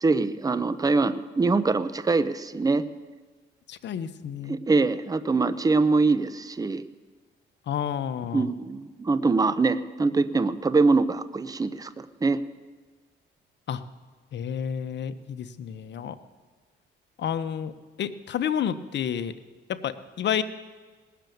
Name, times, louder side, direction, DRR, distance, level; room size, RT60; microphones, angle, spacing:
voice 1, 0.0-2.9 4.5-6.8 8.3-12.4, right 3 dB, 20° right, 13 dB, 0.6 m, -23 dB
voice 2, 3.7-4.6 7.7-8.5 13.7-13.8 14.3-16.2 17.2-17.7 18.0-19.3 19.7-20.4, left 8 dB, 65° left, 12 dB, 0.9 m, -30 dB
18.5 x 6.8 x 9.2 m, 1.4 s
cardioid pair, 90°, 20 cm